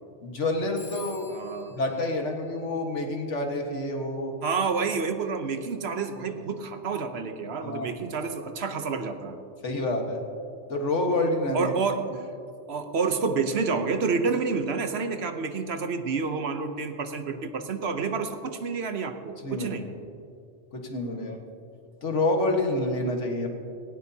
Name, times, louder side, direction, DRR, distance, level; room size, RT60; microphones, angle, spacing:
voice 1, 0.2-1.3 1.8-4.4 7.6-8.0 9.6-10.2 10.7-11.7 19.4-19.8 20.7-21.4 22.0-23.5, left 2 dB, 75° left, 2 dB, 1.9 m, -28 dB
Telephone, 0.8-3.3, left 4 dB, 30° left, 0.9 m, -49 dB
voice 2, 1.3-1.8 4.4-9.4 11.5-12.1 12.7-19.9 21.1-21.4, right 5 dB, 60° right, 7 dB, 1.1 m, -29 dB
18.0 x 17.5 x 2.8 m, 2.5 s
omnidirectional pair, 1.2 m